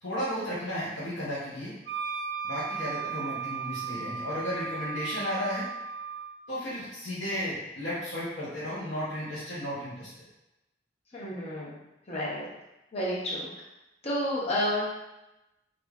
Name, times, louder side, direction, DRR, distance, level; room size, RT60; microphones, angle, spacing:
voice 1, 0.0-1.7 2.4-5.6 6.5-10.1, equal, 85° left, -10 dB, 0.8 m, -34 dB
Wind instrument woodwind instrument, 1.9-6.3, right 6 dB, 80° right, 0.4 m, -36 dB
voice 2, 2.9-3.2 11.1-11.8 12.1-12.5 12.9-13.5 14.0-14.8, left 1 dB, 35° left, -5 dB, 0.7 m, -31 dB
3.2 x 2.4 x 2.3 m, 0.95 s
head